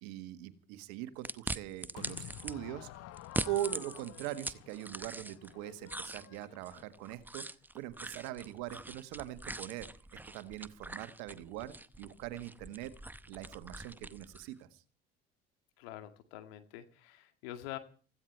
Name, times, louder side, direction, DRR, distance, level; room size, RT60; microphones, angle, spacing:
voice 1, 0.0-3.1 3.5-12.9 13.3-14.8, right 13 dB, 70° right, 12 dB, 1.6 m, -42 dB
sound 1, 1.2-2.5 3.2-5.5 5.9-14.5, right 2 dB, 5° right, 0.7 m, -43 dB
Crowd / Fireworks, 1.9-7.2, left 14 dB, 55° left, 1.0 m, -51 dB
voice 2, 15.8-17.8, left 13 dB, 75° left, 9 dB, 2.1 m, -46 dB
20.5 x 15.5 x 4.6 m, 0.39 s
hypercardioid pair, 70°, 30 cm